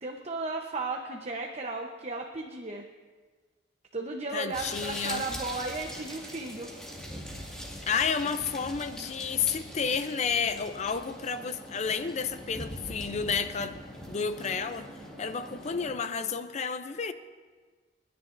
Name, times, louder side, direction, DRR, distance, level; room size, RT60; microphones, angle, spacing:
voice 1, 0.0-2.8 3.9-6.7, right 3 dB, 35° right, 2 dB, 0.8 m, -35 dB
voice 2, 4.3-5.3 7.9-13.8 14.1-14.9 15.2-17.1, left 6 dB, 40° left, 11 dB, 0.5 m, -31 dB
sound 1, 4.5-15.9, equal, 5° left, 2.0 m, -42 dB
30.0 x 10.0 x 2.6 m, 1.4 s
head